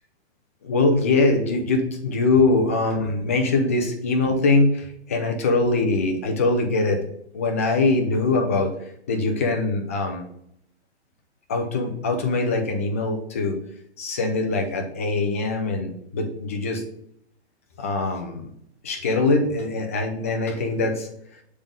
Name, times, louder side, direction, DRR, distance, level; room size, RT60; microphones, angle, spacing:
voice 1, 0.6-7.0 7.3-8.7 9.1-10.2 11.5-13.6 14.0-16.8 17.8-18.5 18.8-21.1, left 3 dB, 15° left, 4 dB, 0.3 m, -22 dB
7.3 x 3.5 x 5.1 m, 0.73 s
hypercardioid pair, 150°, 34 cm